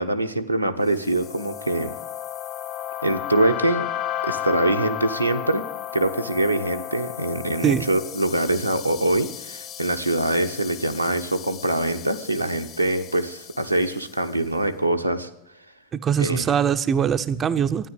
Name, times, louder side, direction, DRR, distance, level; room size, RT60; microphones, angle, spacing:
voice 1, 0.0-1.9 3.0-3.9 4.2-5.7 5.9-15.3 16.2-16.5, right 1 dB, 90° right, 4 dB, 1.0 m, -24 dB
sound 1, 0.9-14.3, left 11 dB, 35° left, 1.3 m, -34 dB
voice 2, 15.9-17.9, right 8 dB, 25° right, 10 dB, 0.6 m, -22 dB
13.0 x 10.0 x 9.7 m, 0.78 s
figure-of-eight pair, 90°, 0 cm